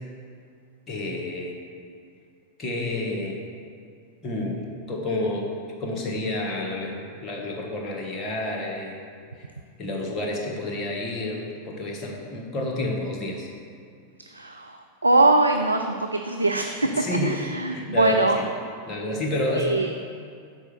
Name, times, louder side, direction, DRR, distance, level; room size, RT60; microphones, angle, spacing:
voice 1, 0.9-1.6 2.6-3.4 4.2-5.5 5.8-9.0 9.4-9.5 9.8-13.5 16.8-17.4 17.7-18.5 18.9-19.7, left 1 dB, 25° left, -1 dB, 1.4 m, -29 dB
voice 2, 14.3-18.4 19.5-19.9, right 2 dB, 80° right, 5 dB, 0.3 m, -22 dB
6.4 x 4.8 x 6.6 m, 2.2 s
figure-of-eight pair, 90°, 0 cm